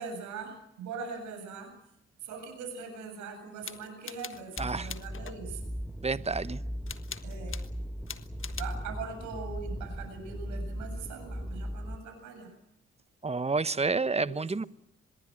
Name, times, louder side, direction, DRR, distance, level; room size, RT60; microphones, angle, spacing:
voice 1, 0.0-1.7 2.2-5.7 7.2-7.6 8.6-12.6 14.2-14.5, right 5 dB, 75° right, 7.8 m, -41 dB
sound 1, 3.6-5.4 6.9-7.7 8.1-8.8, left 7 dB, 45° left, 1.5 m, -43 dB
sound 2, 4.6-12.0, equal, ahead, 2.0 m, -38 dB
voice 2, 4.6-4.9 6.0-6.6 13.2-14.6, right 4 dB, 20° right, 1.2 m, -29 dB
24.5 x 22.0 x 7.8 m
hypercardioid pair, 45°, 30 cm